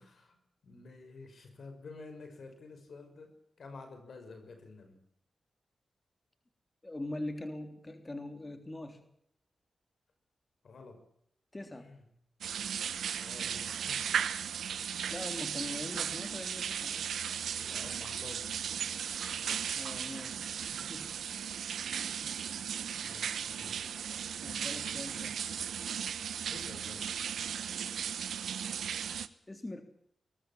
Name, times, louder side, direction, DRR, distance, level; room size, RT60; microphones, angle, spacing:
voice 1, 0.0-5.0 10.6-11.0 11.7-12.0 13.2-14.0 17.5-18.6 23.0-23.8 26.5-27.2, left 3 dB, 70° left, 7 dB, 5.8 m, -50 dB
voice 2, 6.8-9.1 11.5-11.9 15.1-16.9 19.7-21.2 22.9-23.1 24.4-25.4 29.5-29.8, left 1 dB, 30° left, 7 dB, 3.4 m, -42 dB
sound 1, 12.4-29.3, right 8 dB, 80° right, 1.1 m, -36 dB
21.0 x 20.0 x 7.4 m, 0.71 s
supercardioid pair, 40°, 0 cm